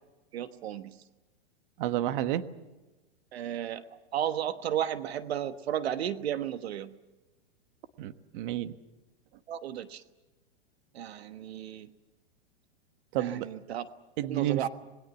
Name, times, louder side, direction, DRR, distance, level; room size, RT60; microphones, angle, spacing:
voice 1, 0.3-1.0 3.3-3.8 4.1-7.0 9.5-10.0 10.9-11.9 13.2-13.9 14.2-14.7, right 10 dB, 75° right, 10 dB, 1.3 m, -33 dB
voice 2, 1.8-2.5 8.0-8.7 13.1-13.5 14.2-14.7, right 13 dB, 55° right, 11 dB, 1.4 m, -30 dB
27.0 x 21.0 x 7.1 m, 1.1 s
hypercardioid pair, 130°, 32 cm